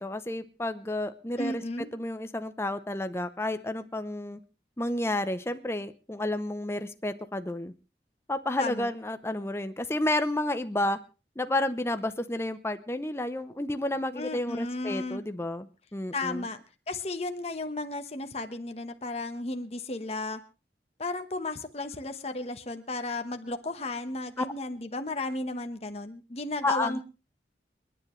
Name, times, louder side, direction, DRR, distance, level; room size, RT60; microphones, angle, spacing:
voice 1, 0.0-1.6 1.9-4.4 4.8-7.7 8.3-11.0 11.4-16.5 24.4-24.5 26.6-27.0, left 1 dB, 15° left, 10 dB, 0.7 m, -31 dB
voice 2, 1.4-1.9 8.6-8.9 14.1-15.2 16.1-20.4 21.0-27.0, left 2 dB, 35° left, 7 dB, 1.1 m, -34 dB
29.0 x 10.0 x 3.2 m, 0.32 s
head